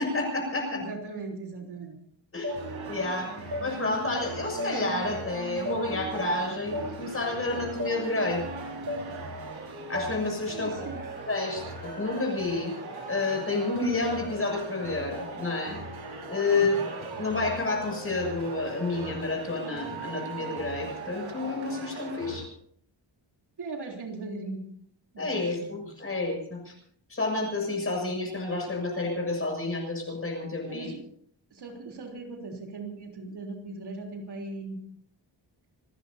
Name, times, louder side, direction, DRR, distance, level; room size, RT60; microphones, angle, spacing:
voice 1, 0.0-0.8 2.3-2.5 2.9-8.4 9.9-10.7 11.3-12.7 13.1-15.8 16.3-16.7 17.2-22.5 25.2-26.7 27.1-30.9, left 3 dB, 30° left, 1 dB, 7.2 m, -30 dB
voice 2, 0.7-2.0 10.5-11.0 16.5-16.9 23.6-24.7 25.1-25.8 30.6-31.0 31.5-34.8, right 3 dB, 60° right, 1 dB, 3.6 m, -39 dB
sound 1, 2.4-2.6 3.5-3.7 4.6-4.7 5.6-5.8 6.7-6.9 7.8-8.0 8.9-9.0 9.9-10.1, left 2 dB, 40° right, 1.5 m, -32 dB
sound 2, 2.5-22.4, right 4 dB, 85° right, 5.1 m, -39 dB
sound 3, 10.7-20.6, right 1 dB, 25° right, 5.1 m, -48 dB
27.0 x 19.0 x 2.8 m, 0.65 s
wide cardioid pair, 165°, 46 cm